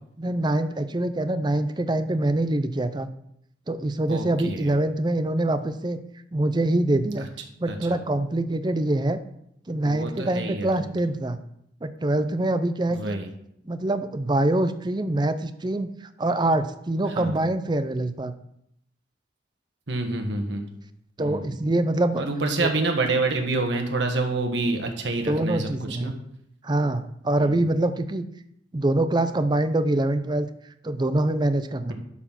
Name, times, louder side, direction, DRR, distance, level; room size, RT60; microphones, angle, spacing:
voice 1, 0.2-3.1 3.7-6.0 6.3-7.3 7.6-9.2 9.7-11.4 11.8-13.2 13.7-18.3 21.2-22.2 22.6-22.9 25.3-26.1 26.6-28.3 28.7-30.5 30.8-31.9, right 1 dB, 25° right, 11 dB, 0.5 m, -24 dB
voice 2, 4.1-4.7 7.7-8.0 9.8-10.9 12.9-13.3 17.1-17.4 19.9-20.7 21.2-21.6 22.1-26.2 27.4-27.6, right 2 dB, 65° right, 4 dB, 1.5 m, -28 dB
11.5 x 4.4 x 5.8 m, 0.75 s
head